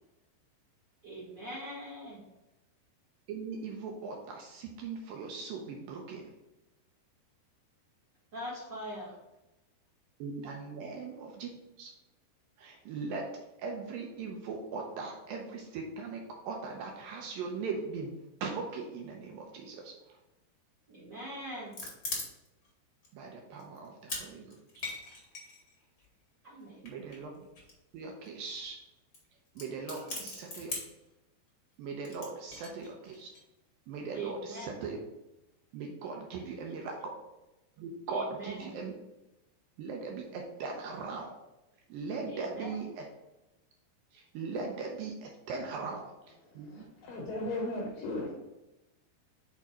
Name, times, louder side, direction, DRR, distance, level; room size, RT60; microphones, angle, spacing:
voice 1, 1.0-2.2 8.3-9.1 20.9-21.9 26.4-26.9 29.9-30.3 32.7-32.8 34.1-34.8 36.6-36.7 38.1-38.7 42.3-42.7 47.5-47.7, right 1 dB, 45° right, -7 dB, 1.4 m, -42 dB
voice 2, 3.3-6.3 10.2-11.5 11.8-11.9 12.6-20.2 23.1-24.8 26.8-27.4 27.9-28.8 29.6-30.8 31.8-33.3 33.9-35.0 35.7-37.2 37.8-38.9 39.8-41.4 41.9-43.1 44.1-46.7, right 4 dB, 80° right, 1 dB, 2.1 m, -39 dB
sound 1, 21.5-22.7 23.0-23.1 23.6-24.2 24.5-26.1 26.8-28.0 28.2-28.3 28.5-28.7 29.1-29.2 29.5-31.0 32.0-33.4, left 3 dB, 50° left, 1.1 m, -40 dB
voice 3, 46.7-48.3, left 2 dB, 75° left, -1 dB, 2.1 m, -36 dB
6.0 x 4.6 x 4.1 m, 0.97 s
omnidirectional pair, 4.8 m